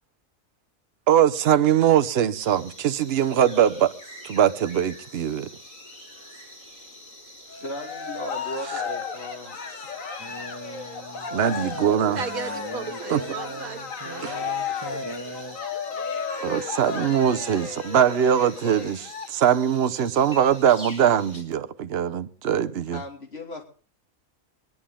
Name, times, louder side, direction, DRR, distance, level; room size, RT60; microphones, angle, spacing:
voice 1, 1.1-3.9 4.2-5.5 11.3-12.2 13.1-13.2 14.2-14.4 16.4-23.0, right 9 dB, 50° right, 1.0 m, -22 dB
sound 1, 2.3-21.4, left 1 dB, 30° left, 3.4 m, -46 dB
Cheering, 7.5-19.3, left 5 dB, 70° left, 1.8 m, -34 dB
voice 2, 7.5-9.9 22.9-23.6, left 1 dB, 45° left, 3.0 m, -37 dB
sound 2, 10.2-15.6, right 1 dB, 20° right, 1.6 m, -39 dB
voice 3, 11.9-14.5, right 5 dB, 80° right, 1.9 m, -35 dB
23.5 x 11.0 x 3.7 m
omnidirectional pair, 1.5 m